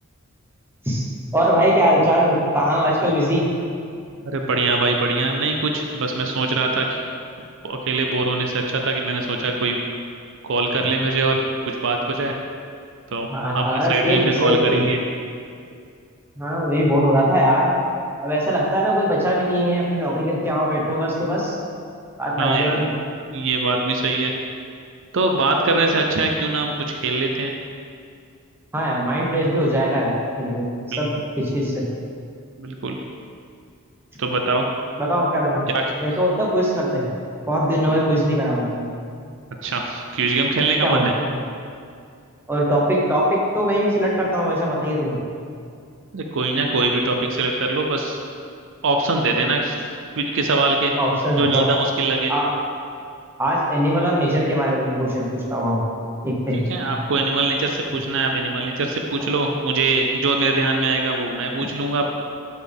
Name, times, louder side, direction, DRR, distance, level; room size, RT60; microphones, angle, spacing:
voice 1, 1.3-3.5 13.3-14.8 16.4-17.7 18.2-21.6 22.2-23.0 28.7-31.1 31.4-31.8 35.0-35.6 36.0-37.1 37.5-38.8 40.8-41.3 42.5-45.3 51.0-51.7 52.3-52.5 53.4-55.8 56.2-56.7, equal, 10° right, -4 dB, 1.1 m, -21 dB
voice 2, 4.2-7.0 7.6-9.8 10.4-11.4 11.7-12.3 13.1-13.3 13.5-15.0 22.4-22.8 23.3-24.3 25.1-27.5 30.9-31.0 32.6-33.0 34.2-34.7 35.7-35.8 39.6-41.1 46.1-48.2 48.8-49.7 50.2-50.9 51.4-52.3 56.5-62.1, right 3 dB, 60° right, 2 dB, 0.6 m, -22 dB
11.5 x 4.2 x 3.6 m, 2.4 s
head